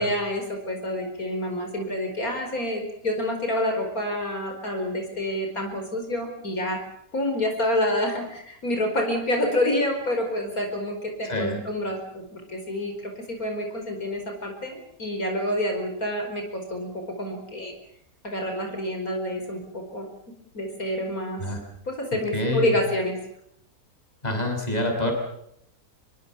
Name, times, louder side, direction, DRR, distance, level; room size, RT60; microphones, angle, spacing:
voice 1, 0.0-6.8 7.1-17.7 18.2-20.1 20.5-21.4 21.9-23.2, left 1 dB, 70° left, 4 dB, 5.4 m, -28 dB
voice 2, 11.2-11.6 21.4-21.6 22.1-22.8 24.2-25.1, left 1 dB, 25° left, 3 dB, 6.0 m, -27 dB
25.5 x 23.0 x 7.2 m, 0.73 s
omnidirectional pair, 1.6 m